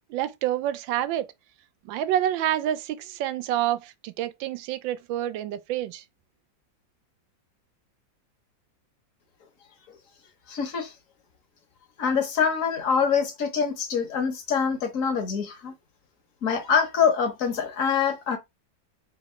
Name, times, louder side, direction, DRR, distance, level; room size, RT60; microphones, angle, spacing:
voice 1, 0.1-1.3 1.9-6.0, right 12 dB, 90° right, 1.3 m, -28 dB
voice 2, 10.5-10.9 12.0-15.7 16.4-18.4, left 6 dB, 55° left, 1.1 m, -25 dB
3.7 x 2.9 x 4.2 m
omnidirectional pair, 2.0 m